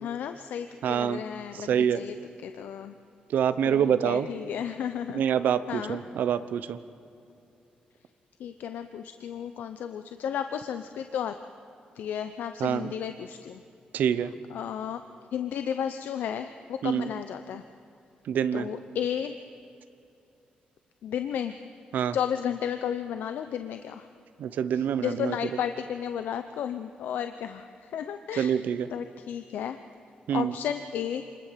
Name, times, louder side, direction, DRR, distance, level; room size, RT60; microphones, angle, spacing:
voice 1, 0.0-2.1 2.4-2.9 3.6-5.2 5.7-6.0 8.4-11.3 11.9-13.6 14.5-15.0 15.3-17.6 18.5-19.3 21.0-21.7 22.1-24.1 24.7-28.6 28.9-29.8 30.3-31.3, left 9 dB, 85° left, 9 dB, 0.8 m, -33 dB
voice 2, 0.8-1.2 1.6-2.0 3.3-4.3 5.1-6.8 12.6-12.9 13.9-14.3 16.8-17.1 18.3-18.7 21.9-22.2 24.4-25.4 28.4-28.9 30.3-30.5, right 8 dB, 80° right, 13 dB, 0.9 m, -26 dB
25.5 x 20.5 x 7.5 m, 2.7 s
cardioid pair, 90°, 3 cm